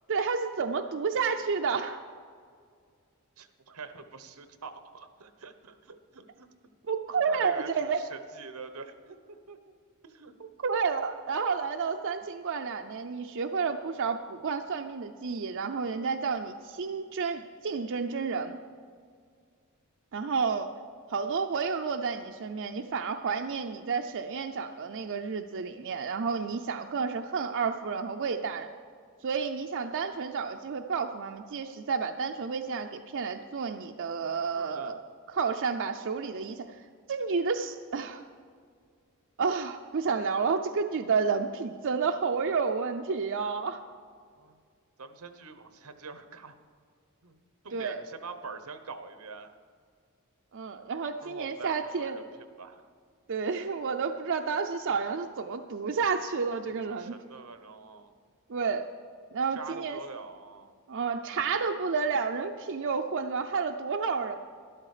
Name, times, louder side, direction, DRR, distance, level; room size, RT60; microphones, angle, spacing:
voice 1, 0.1-2.0 6.9-8.0 10.6-18.6 20.1-20.7 21.1-28.7 29.2-35.0 35.3-36.6 37.1-38.3 39.4-43.8 47.7-48.0 50.5-52.2 53.3-57.1 58.5-58.9 59.3-60.0 60.9-64.3, right 5 dB, 60° right, 5 dB, 0.5 m, -30 dB
voice 2, 3.4-6.5 7.1-9.2 9.5-9.6 10.0-10.3 34.5-34.9 44.3-44.6 45.0-46.5 47.2-47.4 47.6-49.5 51.2-52.9 56.7-58.1 59.5-60.7, right 4 dB, 90° right, 9 dB, 0.9 m, -45 dB
12.5 x 11.5 x 4.9 m, 2.1 s
head